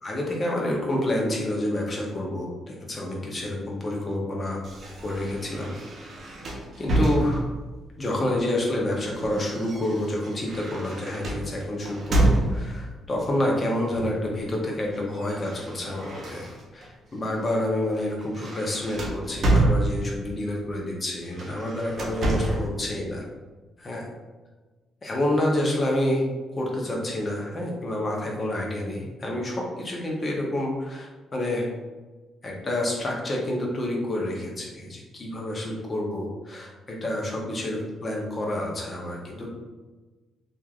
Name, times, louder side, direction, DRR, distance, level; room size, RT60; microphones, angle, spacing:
voice 1, 0.0-4.6 5.0-5.7 6.8-7.5 8.0-16.5 16.7-23.2 23.8-24.0 25.0-26.3 26.5-31.7 32.4-39.5, left 1 dB, 35° left, -2 dB, 0.8 m, -28 dB
sound 1, 4.6-7.7 8.7-12.9 13.9-14.3 14.6-16.9 17.3-17.6 17.9-20.3 21.2-22.7, right 1 dB, 50° right, 0.7 m, -28 dB
3.0 x 2.5 x 2.4 m, 1.3 s
cardioid pair, 90°, 0 cm